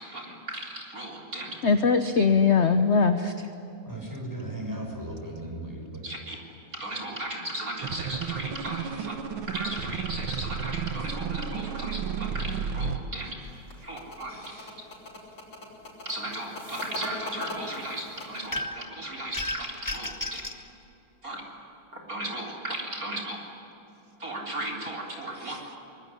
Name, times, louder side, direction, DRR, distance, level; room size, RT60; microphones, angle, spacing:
voice 1, 0.0-1.6 6.0-6.4 6.7-9.1 9.5-13.4 13.8-14.4 16.0-20.4 21.2-21.4 21.9-23.4 24.2-25.8, right 1 dB, 40° right, 0 dB, 4.2 m, -36 dB
voice 2, 1.6-3.5 25.4-25.6, left 5 dB, 45° left, 8 dB, 0.9 m, -22 dB
voice 3, 3.8-6.0 13.8-14.7, right 1 dB, 10° right, 0 dB, 6.3 m, -38 dB
sound 1, 7.8-13.0, right 6 dB, 75° right, 2.3 m, -32 dB
sound 2, 13.5-18.6, left 1 dB, 70° left, 5.8 m, -40 dB
sound 3, 18.5-18.9 19.3-20.6, left 1 dB, 10° left, 1.1 m, -33 dB
24.5 x 21.5 x 10.0 m, 3.0 s
omnidirectional pair, 2.3 m